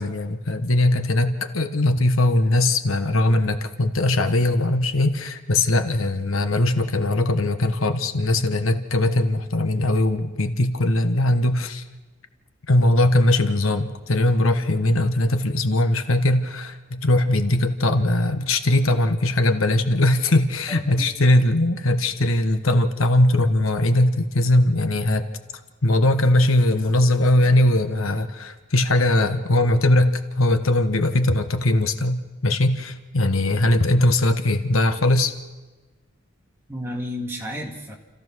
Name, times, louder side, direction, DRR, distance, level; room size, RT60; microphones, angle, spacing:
voice 1, 0.0-11.8 12.7-25.3 25.8-35.3, left 1 dB, 80° left, 8 dB, 1.2 m, -20 dB
voice 2, 20.7-21.1 36.7-37.9, equal, 10° right, -1 dB, 2.3 m, -32 dB
29.0 x 14.5 x 6.3 m, 1.2 s
head